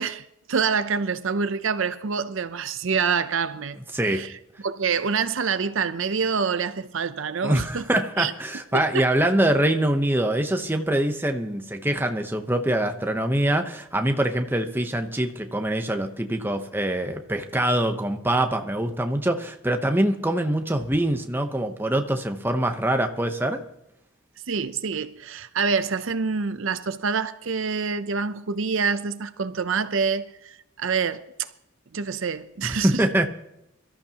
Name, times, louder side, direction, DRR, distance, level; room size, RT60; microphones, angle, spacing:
voice 1, 0.0-3.8 4.0-4.3 4.6-7.8 8.2-8.3 8.7-9.0 24.5-31.5 31.9-33.0, right 5 dB, 65° right, 0.6 m, -26 dB
voice 2, 3.9-4.3 7.4-23.6 32.6-33.3, right 1 dB, 10° right, 0.9 m, -24 dB
23.5 x 13.5 x 2.9 m
head